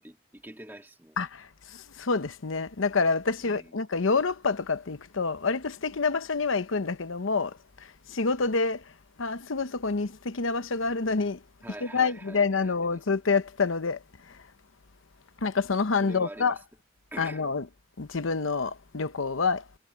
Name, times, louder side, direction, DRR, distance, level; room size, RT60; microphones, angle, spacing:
voice 1, 0.0-1.2 3.4-3.8 11.6-13.0 16.0-16.6 17.1-17.5, right 1 dB, 10° right, 1.9 m, -45 dB
voice 2, 2.0-7.5 8.1-8.8 9.2-11.4 11.9-14.0 15.4-16.5 17.2-17.6 18.0-19.6, left 4 dB, 85° left, 0.9 m, -27 dB
head